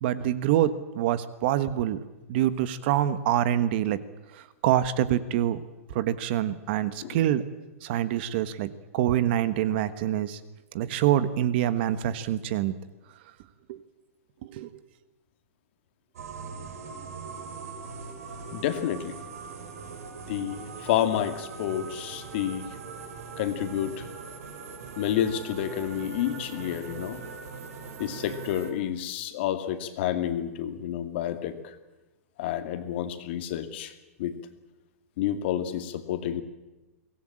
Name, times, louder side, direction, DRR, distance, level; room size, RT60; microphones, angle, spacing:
voice 1, 0.0-2.0 2.3-4.0 4.6-5.6 5.9-7.4 7.8-8.7 8.9-10.4 10.7-12.7 13.7-13.8 14.5-14.7, right 11 dB, 45° right, 14 dB, 1.3 m, -25 dB
sound 1, 16.1-28.7, right 5 dB, 70° right, 4.9 m, -41 dB
voice 2, 18.5-19.1 20.3-22.8 23.4-24.1 25.0-27.2 28.0-31.7 32.4-33.9 34.2-34.4 35.2-36.4, left 11 dB, 45° left, 8 dB, 2.3 m, -29 dB
23.0 x 18.0 x 8.9 m, 1.1 s
hypercardioid pair, 160°, 8 cm